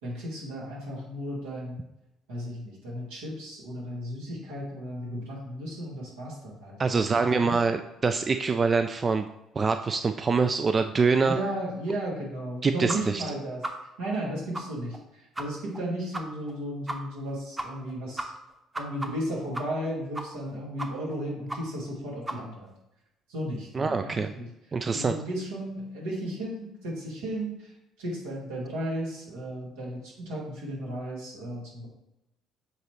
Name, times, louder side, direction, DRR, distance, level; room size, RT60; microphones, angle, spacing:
voice 1, 0.0-1.9 2.3-7.6 11.2-13.6 14.0-18.3 18.7-22.7 23.3-24.5 24.9-31.9, right 1 dB, 80° right, -4 dB, 2.1 m, -35 dB
voice 2, 6.8-9.3 9.6-11.4 12.6-13.2 23.7-24.3 24.7-25.1, right 4 dB, 35° right, 8 dB, 0.4 m, -25 dB
sound 1, 12.9-13.0 13.2-13.3 13.6-13.7 14.1-14.2 14.5-14.6 14.9-15.0 15.3-15.4 15.7-15.8 16.1-16.2 16.5-16.6 16.9-17.0 17.3-17.4 17.6-17.9 18.2-19.9 20.1-20.5 20.8-21.1 21.5-21.6 21.9-22.0 22.3-22.4, right 2 dB, 20° right, 1.0 m, -34 dB
7.9 x 4.1 x 3.2 m, 0.90 s
hypercardioid pair, 55°, 0 cm